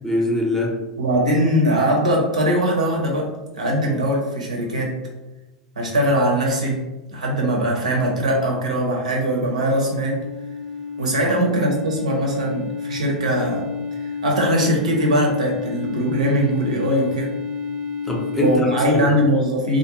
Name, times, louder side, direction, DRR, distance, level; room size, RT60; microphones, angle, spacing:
voice 1, 0.0-0.8 11.2-11.3 18.1-19.1, left 1 dB, 10° left, -1 dB, 0.5 m, -23 dB
voice 2, 1.0-5.0 5.8-6.8 7.1-10.2 11.0-13.7 14.0-17.3 18.4-19.8, equal, 85° right, -1 dB, 0.7 m, -21 dB
sound 1, 8.3-18.6, left 5 dB, 90° left, 0.5 m, -31 dB
2.4 x 2.1 x 2.8 m, 1.1 s
hypercardioid pair, 95°, 4 cm